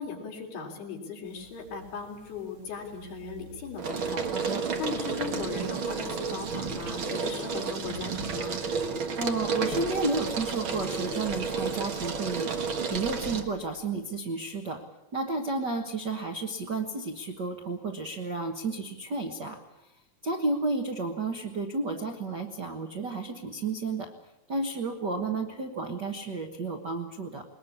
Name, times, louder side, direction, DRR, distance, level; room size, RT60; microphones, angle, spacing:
voice 1, 0.0-4.3 4.8-8.6, left 5 dB, 80° left, 0 dB, 5.4 m, -38 dB
sound 1, 1.4-1.9 2.3-13.4, right 5 dB, 50° right, 1.7 m, -32 dB
voice 2, 4.3-4.7 9.2-14.8 15.1-19.6 20.2-24.1 24.5-27.4, right 3 dB, 85° right, 4 dB, 0.9 m, -32 dB
sound 2, 5.1-14.6, left 2 dB, 30° left, 3.2 m, -51 dB
21.5 x 20.5 x 8.5 m, 0.92 s
omnidirectional pair, 4.4 m